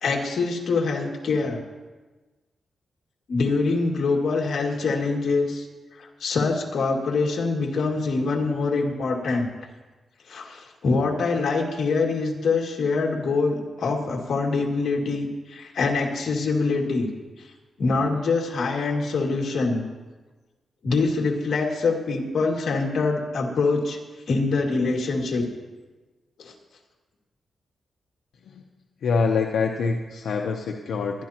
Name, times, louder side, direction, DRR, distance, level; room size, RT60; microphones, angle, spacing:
voice 1, 0.0-1.6 3.3-5.6 6.0-9.5 10.3-17.1 17.8-19.8 20.8-24.0 24.3-25.5 26.4-26.5, left 3 dB, 70° left, 0 dB, 2.2 m, -24 dB
voice 2, 29.0-31.2, left 5 dB, 90° left, 2 dB, 0.8 m, -25 dB
21.0 x 12.0 x 2.9 m, 1.2 s
cardioid pair, 105°, 0 cm